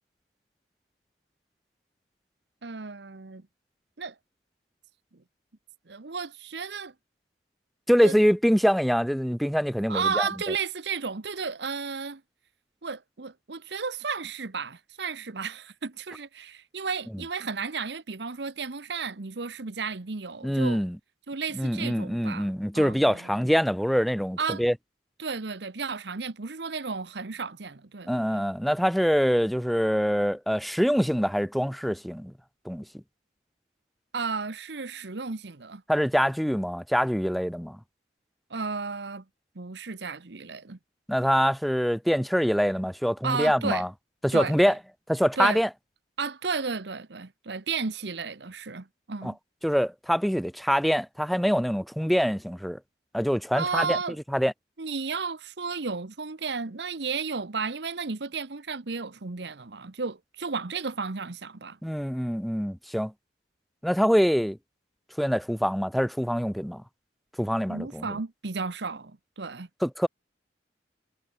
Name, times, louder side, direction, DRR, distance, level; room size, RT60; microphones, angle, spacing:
voice 1, 2.6-3.4 4.0-4.1 5.9-6.9 8.0-8.2 9.9-12.2 12.8-20.8 21.3-23.2 24.4-24.6 25.2-28.4 34.1-35.8 38.5-39.2 39.6-40.8 43.2-43.9 44.3-44.7 45.4-45.6 46.2-49.4 53.5-54.2 54.8-61.8 67.7-69.7, right 5 dB, 65° right, 1.0 m, -33 dB
voice 2, 7.9-10.3 20.4-21.0 21.5-24.7 28.1-32.3 32.6-32.8 35.9-37.8 41.1-43.9 44.2-44.8 45.1-45.7 49.2-49.3 49.6-52.8 53.1-54.0 54.3-54.5 61.8-63.1 63.8-64.6 65.2-66.8 67.4-68.1 69.8-70.1, equal, ahead, 1.0 m, -24 dB
head